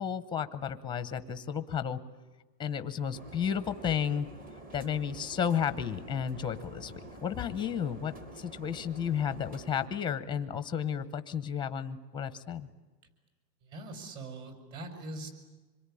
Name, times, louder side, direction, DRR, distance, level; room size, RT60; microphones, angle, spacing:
voice 1, 0.0-2.0 2.6-4.3 4.7-12.7, left 8 dB, 10° left, 12 dB, 0.8 m, -33 dB
sound 1, 3.1-9.9, right 1 dB, 15° right, 1.3 m, -48 dB
voice 2, 13.7-15.3, right 2 dB, 35° right, 9 dB, 5.1 m, -42 dB
27.0 x 22.0 x 10.0 m, 1.3 s
supercardioid pair, 165°, 50 cm